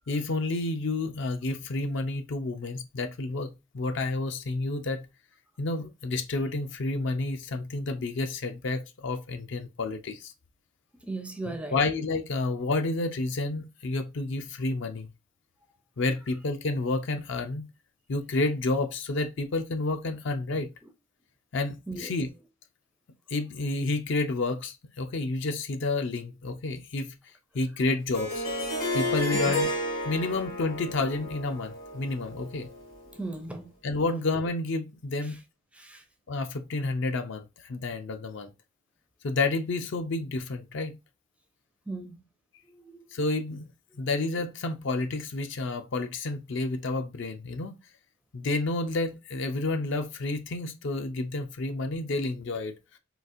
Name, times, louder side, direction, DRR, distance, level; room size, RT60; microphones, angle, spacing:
voice 1, 0.1-3.5 3.7-5.1 5.6-10.3 11.5-15.1 16.0-17.7 18.1-20.7 21.5-22.3 23.3-27.2 27.5-28.4 28.9-29.7 30.0-32.7 33.8-35.4 36.3-38.5 39.2-41.0 43.1-43.6 43.9-47.8 48.3-52.7, left 2 dB, 60° left, 0.5 m, -30 dB
voice 2, 11.1-11.8 21.9-22.1 33.2-33.7 35.8-36.0 41.9-42.2 42.8-43.0, right 2 dB, 5° right, 0.4 m, -36 dB
Harp, 28.1-33.1, left 1 dB, 80° left, 2.0 m, -32 dB
3.9 x 2.4 x 2.5 m
head